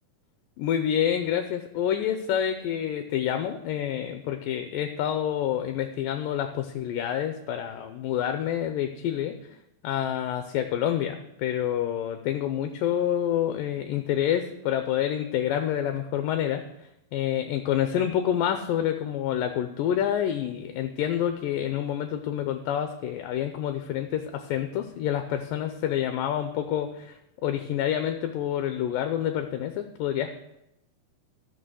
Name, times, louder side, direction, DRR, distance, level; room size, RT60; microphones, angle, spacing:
voice 1, 0.6-9.6 9.8-30.3, left 10 dB, 80° left, 7 dB, 2.3 m, -28 dB
13.5 x 6.3 x 6.3 m, 0.85 s
omnidirectional pair, 4.1 m